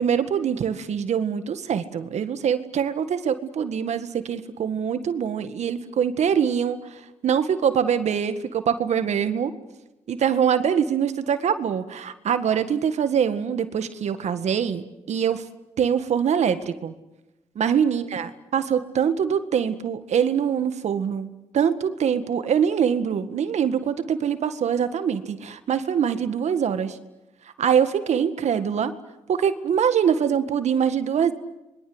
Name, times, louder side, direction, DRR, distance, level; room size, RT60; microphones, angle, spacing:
voice 1, 0.0-6.8 7.2-9.5 10.1-15.4 15.8-16.9 17.6-21.3 21.5-27.0 27.6-28.9 29.3-31.3, right 8 dB, 70° right, 10 dB, 1.8 m, -23 dB
27.5 x 23.0 x 8.0 m, 0.95 s
cardioid pair, 70°, 12 cm